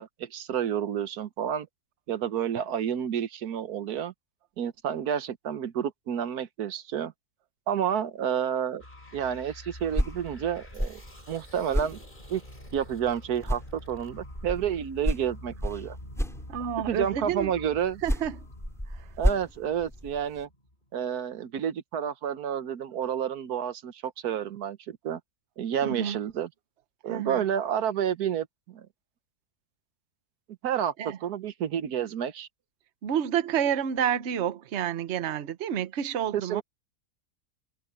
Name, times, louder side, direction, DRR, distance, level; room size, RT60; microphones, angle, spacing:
voice 1, 0.0-1.7 2.1-4.1 4.6-7.1 7.7-8.8 9.1-11.0 11.3-12.0 12.3-12.4 12.7-16.0 16.9-18.0 19.2-20.5 20.9-25.2 25.6-26.5 27.0-28.9 30.6-30.9 31.2-32.5 36.3-36.6, right 9 dB, 80° right, 1.4 m, -30 dB
sound 1, 8.8-21.1, left 1 dB, 30° left, 7.4 m, -47 dB
sound 2, 9.7-13.1 13.4-17.0 17.8-20.5, equal, ahead, 4.2 m, -32 dB
voice 2, 16.5-17.5 18.0-18.5 19.0-19.1 25.8-26.2 27.1-27.4 31.0-31.2 33.0-36.6, right 9 dB, 50° right, 1.1 m, -29 dB
omnidirectional pair, 1.6 m